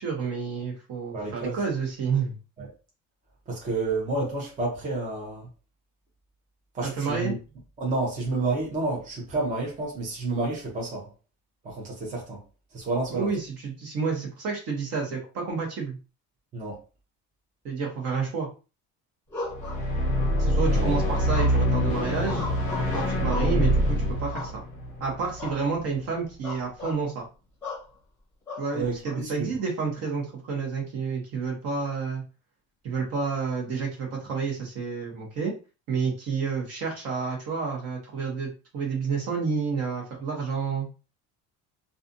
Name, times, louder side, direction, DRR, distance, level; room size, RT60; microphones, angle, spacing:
voice 1, 0.0-2.4 6.8-7.3 13.1-16.0 17.6-18.5 20.4-22.5 22.8-24.6 25.0-27.3 28.6-32.2 32.8-35.5 35.9-40.9, right 5 dB, 45° right, 1.0 m, -30 dB
voice 2, 1.1-1.6 2.6-2.7 3.5-5.5 6.7-7.4 7.8-11.1 11.6-12.4 12.7-13.3 16.5-16.8 20.7-21.0 28.7-29.5, right 3 dB, 25° right, 0.7 m, -30 dB
sound 1, 19.3-20.3 21.3-21.8 22.2-23.7 24.3-24.9 25.4-25.6 25.9-26.1 26.4-27.0 27.6-27.9 28.5-29.2, left 2 dB, 5° left, 1.2 m, -36 dB
sound 2, 19.5-25.8, equal, 20° left, 0.9 m, -25 dB
2.4 x 2.4 x 2.6 m
cardioid pair, 165°, 33 cm